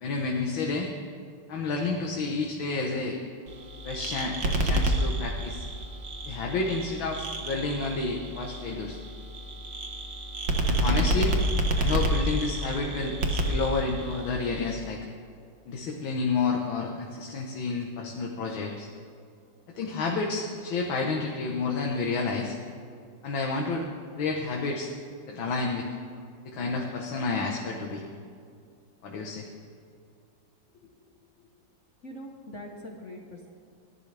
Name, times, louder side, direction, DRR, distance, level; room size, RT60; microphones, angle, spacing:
voice 1, 0.0-0.9 1.5-3.2 3.8-5.7 6.3-9.0 10.7-11.3 11.8-15.0 15.7-18.9 19.8-22.6 23.2-23.9 24.2-24.9 25.3-25.9 26.5-28.0 29.0-29.5, left 3 dB, 80° left, 0 dB, 2.0 m, -30 dB
sound 1, 3.5-14.7, right 1 dB, 65° right, 2.0 m, -29 dB
voice 2, 32.0-33.5, left 1 dB, 45° left, 0 dB, 1.3 m, -42 dB
29.5 x 12.5 x 3.4 m, 2.3 s
omnidirectional pair, 2.1 m